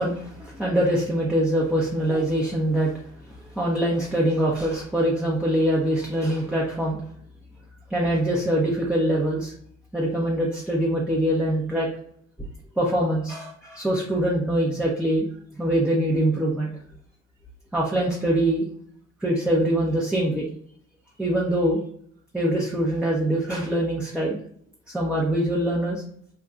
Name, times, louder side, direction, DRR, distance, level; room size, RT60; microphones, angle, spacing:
voice 1, 0.0-2.9 3.3-7.0 7.9-9.5 9.9-11.9 12.8-15.3 15.5-16.7 17.7-18.7 19.2-20.5 21.2-21.8 22.3-24.4 24.9-26.0, right 1 dB, ahead, -4 dB, 0.5 m, -23 dB
3.8 x 2.2 x 2.3 m, 0.63 s
figure-of-eight pair, 55°, 39 cm